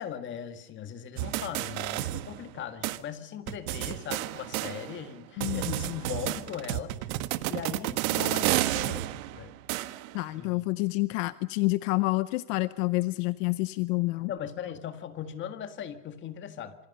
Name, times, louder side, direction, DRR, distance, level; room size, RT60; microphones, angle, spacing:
voice 1, 0.0-7.0 7.5-9.6 10.3-10.6 14.3-16.8, left 9 dB, 25° left, 9 dB, 1.9 m, -39 dB
sound 1, 1.2-2.6 2.8-3.0 3.5-5.1 5.4-10.2, right 16 dB, 65° right, 1.6 m, -31 dB
voice 2, 5.4-5.8 10.1-14.3, left 22 dB, 60° left, 15 dB, 0.8 m, -28 dB
27.5 x 24.5 x 5.5 m, 0.94 s
cardioid pair, 175°, 44 cm